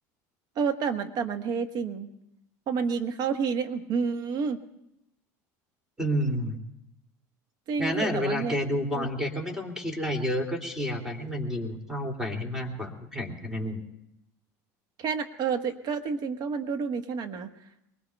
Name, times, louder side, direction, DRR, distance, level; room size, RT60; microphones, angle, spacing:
voice 1, 0.6-2.1 2.7-4.6 7.7-8.5 8.9-9.1 15.0-17.5, right 5 dB, 50° right, 7 dB, 1.3 m, -29 dB
voice 2, 6.0-6.6 7.8-13.8, equal, 5° right, 2 dB, 2.7 m, -30 dB
23.5 x 20.0 x 2.3 m, 0.83 s
supercardioid pair, 95°, 9 cm